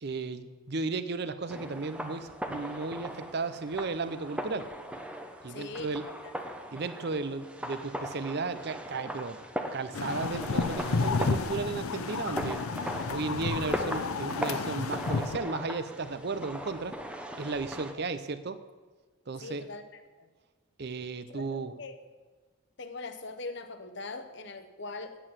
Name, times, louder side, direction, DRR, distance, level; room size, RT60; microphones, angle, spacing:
voice 1, 0.0-4.7 5.4-6.0 6.7-9.4 9.7-12.6 13.1-17.0 17.4-18.6 19.3-19.7 20.8-21.7, right 3 dB, 50° right, 11 dB, 0.6 m, -34 dB
sound 1, 1.5-17.9, equal, 5° right, 0.7 m, -39 dB
voice 2, 5.5-6.3 18.0-18.1 19.4-19.8 20.2-20.3 21.3-21.9 22.8-25.2, left 3 dB, 55° left, 9 dB, 0.9 m, -41 dB
sound 2, 9.9-15.4, left 4 dB, 90° left, 0.7 m, -31 dB
8.8 x 8.7 x 7.5 m, 1.3 s
head